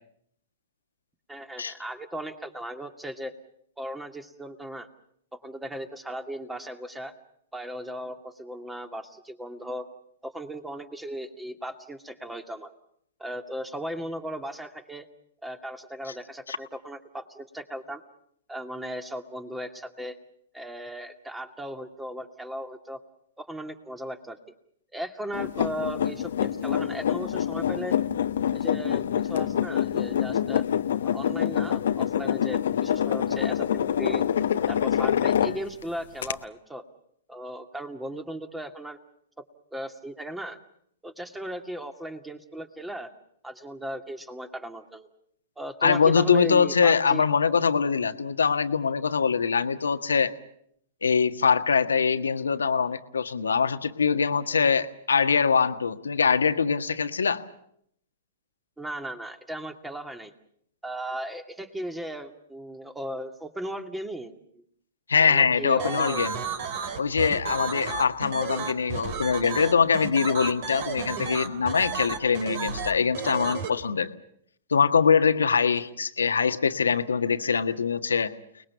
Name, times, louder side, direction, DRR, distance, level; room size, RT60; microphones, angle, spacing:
voice 1, 1.3-3.3 3.8-4.9 5.3-7.1 7.5-9.9 10.2-12.7 13.2-15.1 15.4-18.0 18.5-20.2 20.5-23.0 23.4-24.4 24.9-28.0 28.5-30.6 31.0-34.2 34.7-36.8 37.3-39.0 39.7-40.6 41.0-43.1 43.4-45.1 45.6-47.3 58.8-60.3 60.8-64.6 65.2-66.2, equal, 5° right, 6 dB, 2.3 m, -37 dB
sound 1, 25.3-35.8 36.2-36.3, left 9 dB, 70° left, 1.0 m, -26 dB
voice 2, 45.8-50.3 51.0-57.4 65.1-66.3 67.0-74.1 74.7-78.3, left 6 dB, 85° left, 8 dB, 1.6 m, -23 dB
sound 2, 65.8-73.7, right 6 dB, 55° right, 3.7 m, -32 dB
30.0 x 20.5 x 7.0 m, 0.70 s
hypercardioid pair, 115°, 0 cm